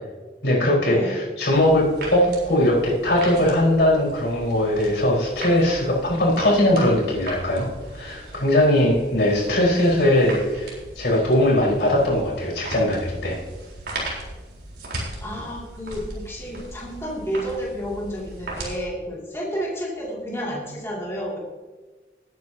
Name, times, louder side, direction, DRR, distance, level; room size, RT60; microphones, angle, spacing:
voice 1, 0.4-7.7 7.9-13.4, left 1 dB, 80° left, -4 dB, 4.4 m, -20 dB
sound 1, 1.5-18.7, right 1 dB, 70° right, 3.9 m, -38 dB
voice 2, 15.2-21.4, equal, 15° left, -4 dB, 2.4 m, -30 dB
19.5 x 9.5 x 2.8 m, 1.3 s
head